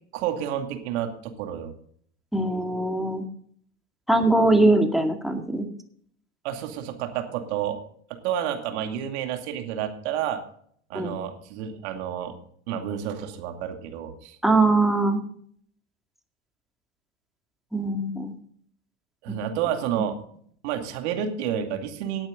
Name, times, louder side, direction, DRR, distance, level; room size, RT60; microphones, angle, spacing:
voice 1, 0.1-1.7 6.4-7.8 8.2-10.4 10.9-12.4 12.7-14.4 19.2-20.2 20.6-22.3, right 9 dB, 65° right, 5 dB, 2.4 m, -30 dB
voice 2, 2.3-3.2 4.1-5.7 10.9-11.1 14.4-15.2 17.7-18.3 19.3-19.4, right 2 dB, ahead, 5 dB, 2.1 m, -21 dB
18.5 x 8.8 x 3.8 m, 0.62 s
hypercardioid pair, 85°, 36 cm